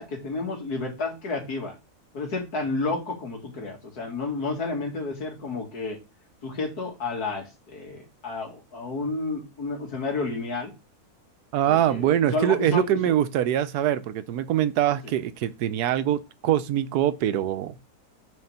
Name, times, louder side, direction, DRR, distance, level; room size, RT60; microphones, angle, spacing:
voice 1, 0.0-1.7 2.1-6.0 6.4-10.7 11.7-13.1 15.0-15.1, left 3 dB, 80° left, 2.5 m, -31 dB
voice 2, 11.5-17.8, right 11 dB, 90° right, 1.2 m, -23 dB
6.5 x 4.3 x 5.5 m
omnidirectional pair, 1.6 m